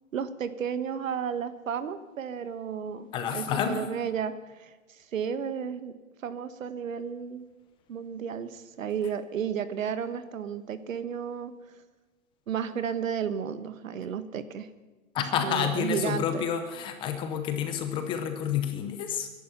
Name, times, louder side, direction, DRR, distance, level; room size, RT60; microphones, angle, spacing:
voice 1, 0.1-5.9 6.2-7.5 7.9-11.5 12.5-14.7 15.4-16.4, right 7 dB, 70° right, 12 dB, 1.4 m, -33 dB
voice 2, 3.1-3.9 15.1-19.3, left 8 dB, 10° left, 7 dB, 0.6 m, -29 dB
22.0 x 11.0 x 5.9 m, 1.3 s
hypercardioid pair, 145°, 41 cm